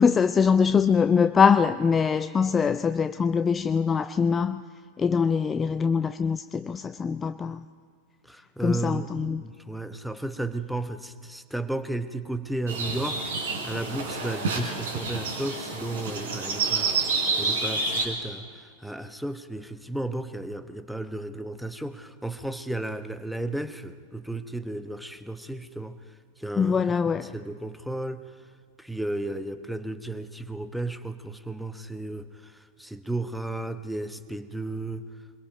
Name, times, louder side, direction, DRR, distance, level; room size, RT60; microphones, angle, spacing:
voice 1, 0.0-4.6 5.0-7.6 8.6-9.4 26.6-27.3, left 6 dB, 20° left, 0.4 m, -23 dB
voice 2, 8.2-13.3 13.6-26.0 26.4-26.8 27.1-28.2 28.8-35.1, right 2 dB, ahead, 0.9 m, -34 dB
sound 1, 12.7-18.0, right 4 dB, 60° right, 3.7 m, -29 dB
24.5 x 22.0 x 5.2 m
figure-of-eight pair, 90°, 0 cm